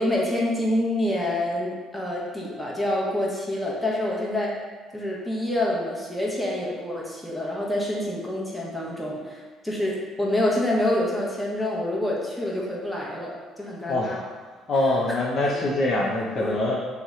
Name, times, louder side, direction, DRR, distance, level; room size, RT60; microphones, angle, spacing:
voice 1, 0.0-4.5 4.9-14.2 16.4-16.6, left 1 dB, 5° left, -4 dB, 0.8 m, -27 dB
voice 2, 13.9-14.3 14.7-16.8, left 2 dB, 50° left, -3 dB, 0.5 m, -24 dB
2.7 x 2.1 x 3.6 m, 1.4 s
supercardioid pair, 80°, 0 cm